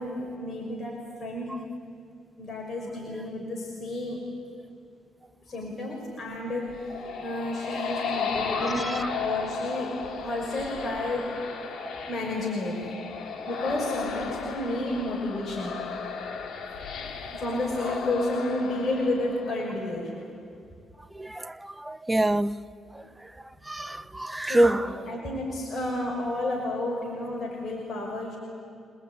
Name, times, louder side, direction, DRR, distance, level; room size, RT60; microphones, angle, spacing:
voice 1, 0.0-1.5 2.4-4.2 5.5-9.9 10.2-11.2 12.1-12.8 13.5-15.7 17.4-20.1 24.4-28.4, left 1 dB, 40° left, 6.0 m, -31 dB
sound 1, 6.5-20.1, left 5 dB, 60° left, 2.7 m, -35 dB
voice 2, 8.5-9.1 21.1-22.6 22.9-23.0 23.7-24.9, right 1 dB, 10° right, 0.8 m, -26 dB
27.5 x 20.0 x 9.7 m
cardioid pair, 90°, 0 cm